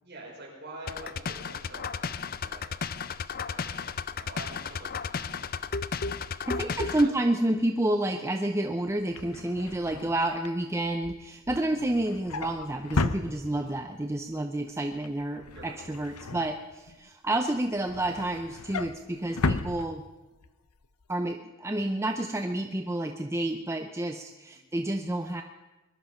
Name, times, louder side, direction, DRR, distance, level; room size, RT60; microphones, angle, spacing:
voice 1, 0.0-2.6 3.2-5.6 6.5-7.1 13.4-13.7 15.5-15.7 24.5-24.6, right 1 dB, 50° right, -3 dB, 5.5 m, -47 dB
sound 1, 0.9-7.1, left 5 dB, 40° left, 0.5 m, -34 dB
voice 2, 6.5-20.0 21.1-25.4, right 1 dB, 10° right, 5 dB, 0.6 m, -29 dB
Drawer open or close, 8.9-13.9 14.3-14.6 14.9-17.1 17.5-20.5 20.8-21.0 21.3-21.4, left 3 dB, 85° left, 0.8 m, -35 dB
21.5 x 11.5 x 5.7 m, 1.1 s
head